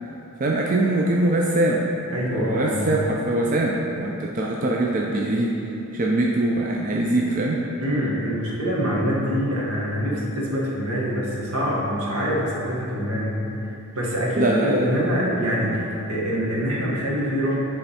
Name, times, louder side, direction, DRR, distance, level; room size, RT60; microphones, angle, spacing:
voice 1, 0.4-1.9 2.3-5.6 5.9-7.6 14.3-15.9, right 1 dB, 35° right, -2 dB, 0.4 m, -23 dB
voice 2, 2.1-2.9 7.8-17.5, equal, 80° right, -5 dB, 1.3 m, -25 dB
8.8 x 3.5 x 4.1 m, 2.9 s
head